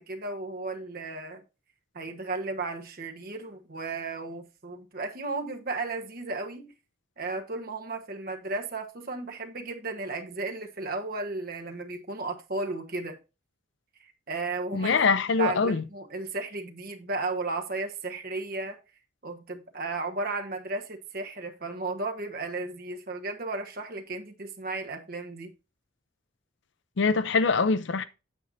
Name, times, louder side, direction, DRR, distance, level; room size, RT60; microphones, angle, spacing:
voice 1, 0.0-1.4 1.9-6.7 7.2-13.2 14.3-15.0 15.4-18.8 19.2-25.5, right 3 dB, 45° right, 1.2 m, -34 dB
voice 2, 14.7-15.8 27.0-28.0, left 4 dB, 60° left, 0.5 m, -23 dB
8.6 x 7.8 x 2.7 m
head